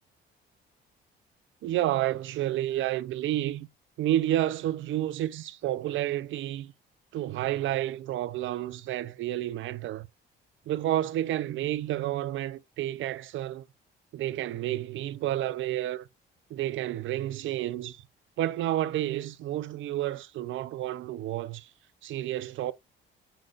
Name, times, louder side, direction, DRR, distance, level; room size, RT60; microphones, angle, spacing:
voice 1, 1.6-3.7 4.0-6.7 7.1-10.1 10.7-13.6 14.1-16.1 16.5-18.1 18.4-21.7 22.0-22.7, right 13 dB, 70° right, 0.6 m, -30 dB
6.5 x 5.9 x 2.5 m
cardioid pair, 130°, 21 cm